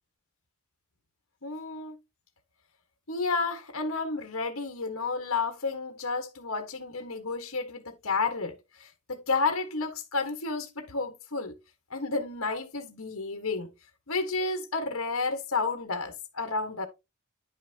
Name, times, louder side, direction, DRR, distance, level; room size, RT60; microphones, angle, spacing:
voice 1, 1.4-1.9 3.1-11.5 11.9-13.7 14.1-16.9, left 4 dB, 65° left, 1.3 m, -31 dB
10.5 x 5.7 x 2.8 m
head